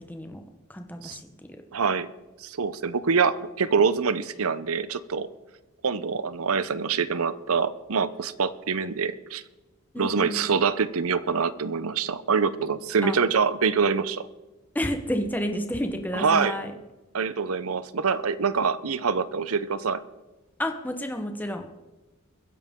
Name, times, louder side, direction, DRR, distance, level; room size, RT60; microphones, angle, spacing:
voice 1, 0.1-0.4 0.7-1.2 9.9-10.4 13.0-13.2 14.7-16.7 20.6-21.8, equal, 10° left, 5 dB, 1.0 m, -30 dB
voice 2, 1.7-2.1 2.4-5.3 5.8-9.4 10.0-14.3 16.1-16.6 17.1-20.0, right 5 dB, 75° right, 15 dB, 0.7 m, -25 dB
23.0 x 10.5 x 3.7 m, 1.1 s
head